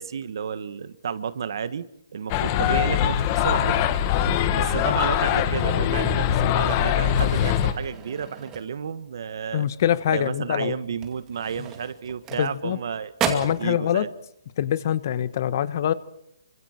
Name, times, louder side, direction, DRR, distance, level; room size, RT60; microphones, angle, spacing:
voice 1, 0.0-3.8 4.5-9.7 10.1-13.1 13.6-14.1, right 7 dB, 60° right, 14 dB, 1.5 m, -32 dB
sound 1, 2.3-7.7, left 10 dB, 25° left, 1.5 m, -22 dB
sound 2, 6.5-9.1 9.5-9.8 10.2-10.3 10.9-12.8 13.1-13.7, right 7 dB, 15° right, 2.4 m, -34 dB
voice 2, 9.5-10.8 12.4-12.8 13.3-14.1 14.6-15.9, left 10 dB, 40° left, 16 dB, 1.2 m, -24 dB
27.5 x 25.5 x 4.5 m, 0.74 s
hypercardioid pair, 165°, 2 cm